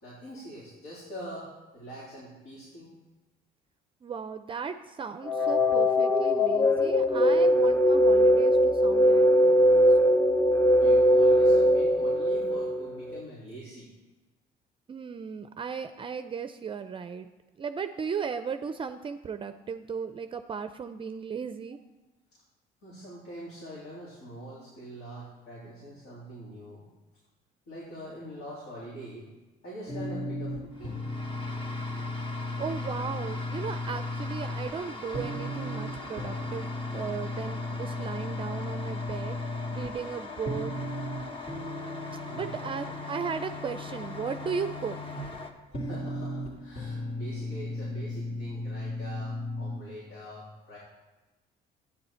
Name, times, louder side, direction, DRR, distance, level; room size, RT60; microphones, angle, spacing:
voice 1, 0.0-3.0 10.8-13.9 22.8-26.8 27.7-29.3 29.6-31.0 42.3-42.7 45.8-50.8, right 1 dB, 85° left, -7 dB, 3.4 m, -44 dB
voice 2, 4.0-9.8 14.9-17.3 17.6-21.8 32.6-39.4 39.7-40.7 42.3-45.0, right 6 dB, 30° right, 9 dB, 0.5 m, -36 dB
sound 1, 5.2-13.2, equal, 15° left, 0.7 m, -21 dB
sound 2, 29.9-49.7, left 1 dB, 50° left, 3.1 m, -36 dB
sound 3, 30.8-45.5, left 3 dB, 30° left, 1.3 m, -42 dB
12.5 x 9.5 x 4.4 m, 1.2 s
cardioid pair, 110°, 17 cm